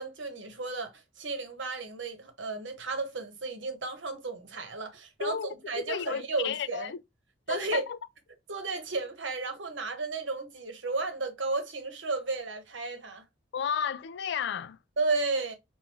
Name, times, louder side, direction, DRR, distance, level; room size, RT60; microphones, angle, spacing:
voice 1, 0.0-6.9 7.5-7.8 8.5-13.2 15.0-15.5, right 3 dB, 85° right, 1.1 m, -33 dB
voice 2, 5.2-7.0 7.5-8.0 13.5-14.8, left 7 dB, 65° left, 0.4 m, -33 dB
4.7 x 2.6 x 2.9 m
head